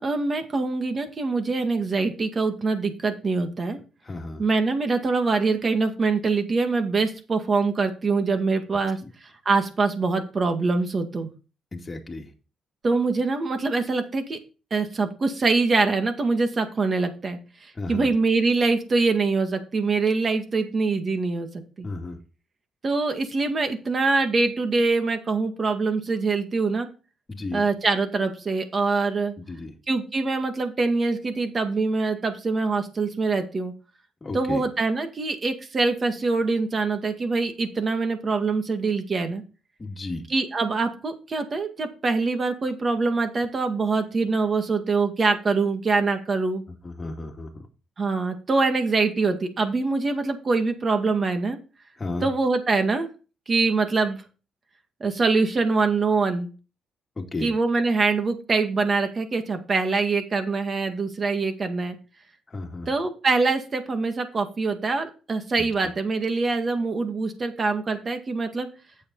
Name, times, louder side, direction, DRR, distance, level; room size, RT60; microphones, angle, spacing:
voice 1, 0.0-3.8 4.4-9.0 9.5-11.3 12.8-14.4 14.7-17.4 17.9-21.5 21.8-21.9 22.8-26.9 27.5-29.3 29.9-33.7 34.3-39.4 40.3-46.6 48.0-51.6 52.2-53.1 53.5-54.2 55.0-56.5 57.4-62.0 62.9-68.7, right 3 dB, 40° right, 6 dB, 2.0 m, -24 dB
voice 2, 4.0-4.4 9.0-9.1 11.7-12.3 17.8-18.1 21.8-22.2 27.3-27.6 29.5-29.7 34.2-34.6 39.8-40.2 46.8-47.7 52.0-52.3 57.2-57.5 62.5-62.9 65.6-65.7, left 2 dB, 25° left, 1 dB, 2.2 m, -33 dB
8.5 x 7.5 x 4.0 m, 0.34 s
cardioid pair, 90°, 0 cm